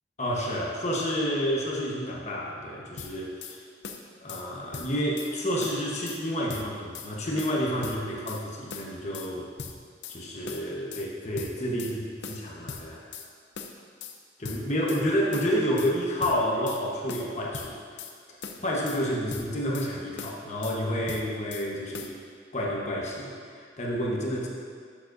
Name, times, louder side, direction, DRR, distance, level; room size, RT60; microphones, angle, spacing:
voice 1, 0.2-3.6 4.2-9.5 10.1-13.2 14.4-17.8 18.6-22.1 22.5-24.5, equal, 40° left, -3 dB, 1.1 m, -29 dB
sound 1, 3.0-3.6 3.8-4.5 4.7-5.3 5.6-6.2 6.5-7.1 7.4-8.4 8.7-9.3 9.6-10.2 10.5-11.1 11.4-12.0 12.2-13.3 13.6-14.2 14.4-15.0 15.3-15.9 16.2-16.8 17.1-18.1 18.4-19.0 19.3-19.9 20.2-20.8 21.1-21.7 21.9-22.2, left 5 dB, 80° left, 0.6 m, -40 dB
11.5 x 7.2 x 2.6 m, 2.1 s
head